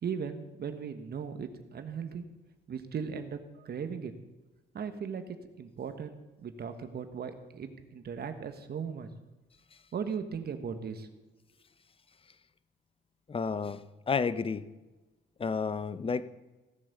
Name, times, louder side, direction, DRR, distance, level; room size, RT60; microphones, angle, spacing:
voice 1, 0.0-2.2 2.7-4.1 4.7-5.3 5.6-9.1 9.9-11.1, right 6 dB, 55° right, 8 dB, 1.3 m, -37 dB
voice 2, 13.3-14.6 15.4-16.3, left 5 dB, 30° left, 15 dB, 0.7 m, -31 dB
16.5 x 7.7 x 6.7 m, 1.2 s
cardioid pair, 90°, 20 cm